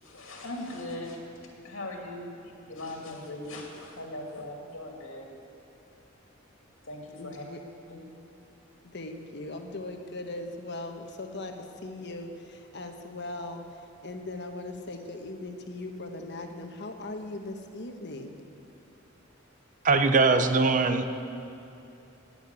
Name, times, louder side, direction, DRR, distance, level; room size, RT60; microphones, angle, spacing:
voice 1, 0.0-1.2 1.6-5.4 6.8-7.4 7.9-8.1, left 1 dB, 75° left, 0 dB, 2.5 m, -39 dB
voice 2, 7.2-7.6 8.9-11.6 11.8-13.6 14.0-18.4, left 2 dB, 60° left, 4 dB, 1.3 m, -39 dB
voice 3, 19.8-21.1, right 3 dB, 40° right, 8 dB, 0.8 m, -21 dB
18.5 x 7.0 x 8.4 m, 2.8 s
head